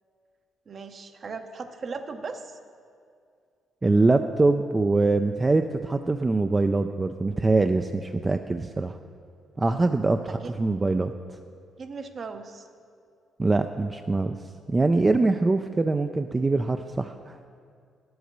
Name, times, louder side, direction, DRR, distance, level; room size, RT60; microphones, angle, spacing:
voice 1, 0.7-2.6 10.4-10.5 11.8-12.7, right 4 dB, 45° right, 7 dB, 0.8 m, -37 dB
voice 2, 3.8-9.0 9.6-11.1 13.4-14.4 14.7-17.4, right 3 dB, 25° right, 7 dB, 0.4 m, -23 dB
10.0 x 7.9 x 6.7 m, 2.2 s
cardioid pair, 90°, 0 cm